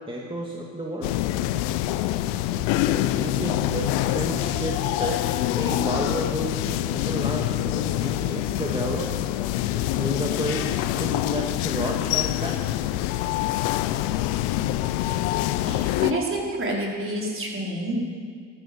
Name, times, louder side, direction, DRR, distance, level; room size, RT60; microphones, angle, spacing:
voice 1, 0.1-1.1 2.9-9.1 9.7-12.6, right 1 dB, 15° right, -1 dB, 2.3 m, -32 dB
sound 1, 1.0-16.1, left 14 dB, 85° left, 0.7 m, -25 dB
voice 2, 15.6-17.9, right 1 dB, 35° right, -2 dB, 4.7 m, -28 dB
13.5 x 13.0 x 8.1 m, 2.1 s
supercardioid pair, 70°, 36 cm